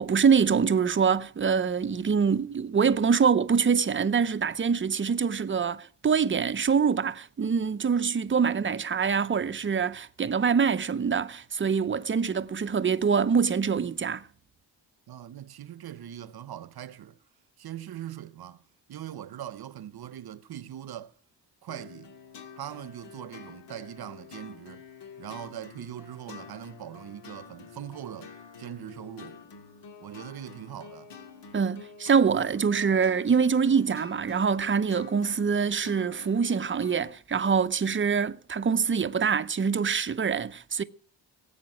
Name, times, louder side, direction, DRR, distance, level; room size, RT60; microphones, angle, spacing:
voice 1, 0.0-14.3 31.5-40.8, right 6 dB, 30° right, 0.6 m, -25 dB
voice 2, 15.1-17.2 17.6-18.6 18.9-21.1 21.6-22.1 22.6-24.9 25.2-29.4 30.0-31.1, right 11 dB, 60° right, 0.8 m, -41 dB
sound 1, 21.7-37.1, left 6 dB, 75° left, 2.3 m, -48 dB
18.0 x 8.7 x 6.1 m
wide cardioid pair, 160°, 43 cm